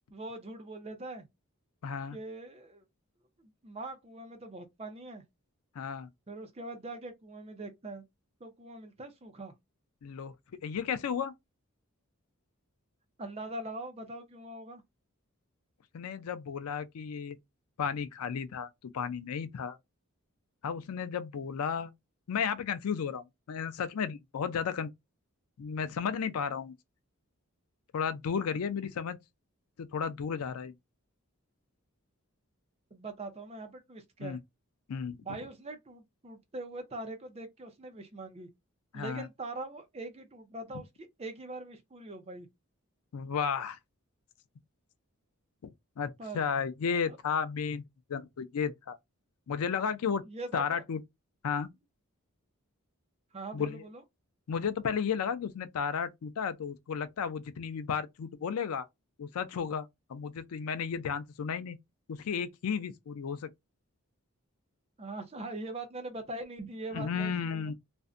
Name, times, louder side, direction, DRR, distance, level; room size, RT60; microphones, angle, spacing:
voice 1, 0.1-1.3 2.1-2.8 3.4-5.2 6.3-8.1 8.4-9.5 13.2-14.8 32.9-34.4 35.2-38.5 38.9-42.5 46.2-46.4 47.1-47.2 50.2-50.8 53.3-54.0 65.0-67.7, right 2 dB, 25° right, 0.5 m, -42 dB
voice 2, 1.8-2.2 5.8-6.1 10.0-10.3 10.6-11.3 15.9-17.4 17.8-19.8 20.6-21.9 22.3-24.9 25.6-26.7 27.9-29.2 29.8-30.7 34.2-34.4 34.9-35.2 38.9-39.3 43.1-43.8 46.0-47.8 48.1-49.0 49.5-50.2 50.5-51.0 51.4-51.7 53.5-53.8 54.5-58.8 59.2-61.8 62.1-63.5 66.9-67.7, left 6 dB, 80° left, 0.4 m, -33 dB
2.5 x 2.1 x 2.4 m
head